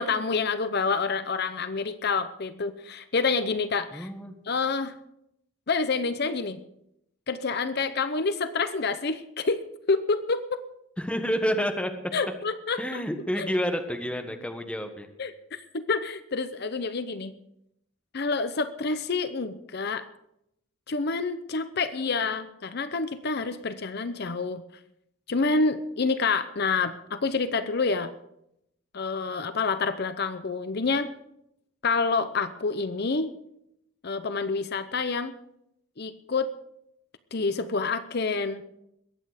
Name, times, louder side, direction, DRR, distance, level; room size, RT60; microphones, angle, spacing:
voice 1, 0.0-4.1 4.5-4.9 5.7-6.6 7.3-9.6 9.9-10.6 12.1-13.0 13.4-13.5 15.2-17.3 18.1-20.1 20.9-24.6 25.3-28.1 28.9-31.1 31.8-33.3 34.0-35.3 36.0-36.5 37.3-38.6, left 4 dB, 55° left, 12 dB, 0.7 m, -28 dB
voice 2, 3.9-4.3 11.0-11.9 12.8-15.1, equal, 5° left, 5 dB, 1.3 m, -29 dB
22.0 x 8.8 x 5.0 m, 0.78 s
head